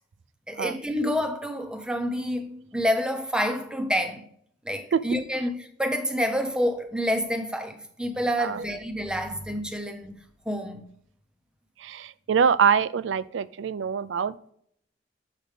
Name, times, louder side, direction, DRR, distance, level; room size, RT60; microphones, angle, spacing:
voice 1, 0.5-4.2 4.6-10.2 10.5-10.9, equal, 5° right, 0.6 m, -28 dB
voice 2, 11.8-14.3, right 7 dB, 85° right, 0.4 m, -24 dB
7.4 x 5.0 x 3.3 m
head